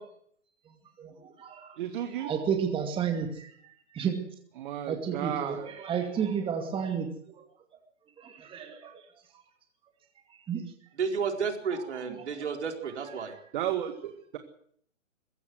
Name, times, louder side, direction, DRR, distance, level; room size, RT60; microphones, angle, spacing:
voice 1, 1.0-1.8 2.2-3.5 3.9-4.2 4.9-7.4 8.2-8.9 10.3-10.6, right 7 dB, 15° right, 4 dB, 2.4 m, -32 dB
voice 2, 1.8-2.3 4.6-5.7 13.5-14.4, right 11 dB, 40° right, 7 dB, 1.9 m, -33 dB
voice 3, 11.0-13.3, right 6 dB, 60° right, 4 dB, 4.6 m, -32 dB
21.5 x 16.5 x 8.0 m, 0.66 s
figure-of-eight pair, 130°, 39 cm